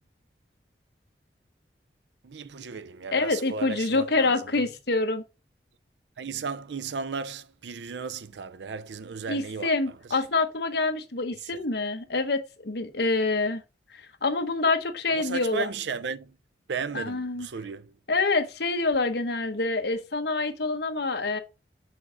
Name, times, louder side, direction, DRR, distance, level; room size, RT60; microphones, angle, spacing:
voice 1, 2.2-4.7 6.2-10.2 11.4-11.6 15.1-16.4 16.7-17.9, right 5 dB, 75° right, 0.5 m, -35 dB
voice 2, 3.1-5.2 9.3-13.6 13.9-15.7 16.9-17.5 18.1-21.4, left 3 dB, 65° left, 1.1 m, -26 dB
6.2 x 4.6 x 5.1 m
head